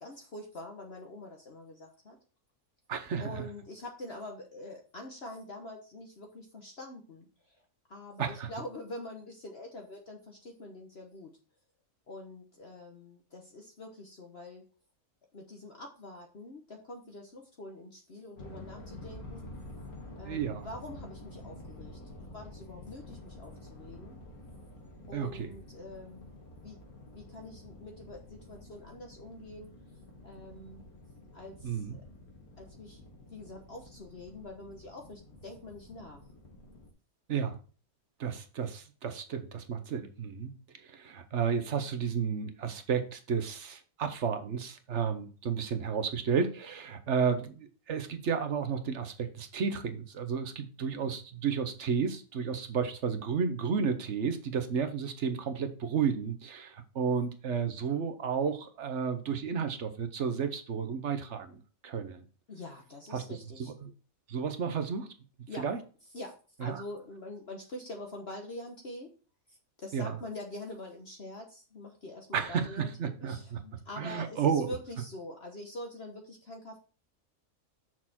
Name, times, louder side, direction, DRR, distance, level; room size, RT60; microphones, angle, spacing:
voice 1, 0.0-2.2 3.2-7.6 7.9-11.3 12.1-14.6 15.3-19.5 20.2-24.2 25.1-26.8 27.1-29.7 30.2-30.8 31.3-32.0 32.6-33.0 33.3-36.2 62.5-63.7 65.5-65.7 66.1-69.1 69.5-76.8, left 1 dB, 50° left, 1.3 m, -45 dB
voice 2, 2.9-3.5 8.2-8.5 20.2-20.6 25.1-25.5 31.6-32.0 37.3-37.6 38.2-40.5 40.9-62.2 63.1-63.2 63.6-63.9 64.3-65.1 65.6-65.8 66.6-66.8 69.9-70.1 72.3-73.6 74.0-74.7, right 6 dB, 55° right, 1.2 m, -32 dB
sound 1, 18.4-36.9, left 1 dB, 85° left, 2.5 m, -49 dB
6.6 x 6.2 x 4.3 m
omnidirectional pair, 1.5 m